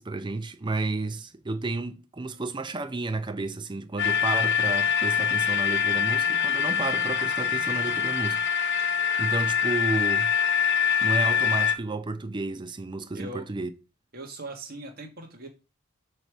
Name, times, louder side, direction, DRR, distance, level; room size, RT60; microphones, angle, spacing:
voice 1, 0.0-10.3 11.0-13.7, right 3 dB, 20° right, 0.5 m, -32 dB
sound 1, 4.0-11.8, left 7 dB, 50° left, 0.8 m, -24 dB
voice 2, 13.1-13.5 14.1-15.5, right 2 dB, 45° right, 1.7 m, -40 dB
8.3 x 3.4 x 6.1 m
head